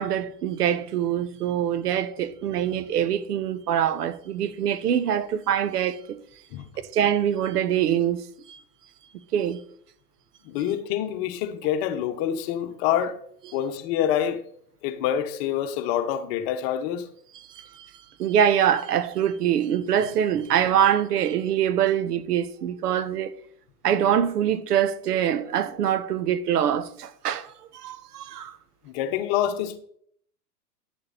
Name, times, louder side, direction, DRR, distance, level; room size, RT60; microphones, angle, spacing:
voice 1, 0.0-6.2 6.9-8.6 9.3-9.6 17.3-17.9 18.2-23.3 23.8-28.6, right 9 dB, 75° right, 1.0 m, -24 dB
voice 2, 10.4-13.2 13.5-14.4 14.8-17.1 28.8-29.8, left 10 dB, 40° left, 1.2 m, -26 dB
10.5 x 6.8 x 4.2 m
hypercardioid pair, 125°, 47 cm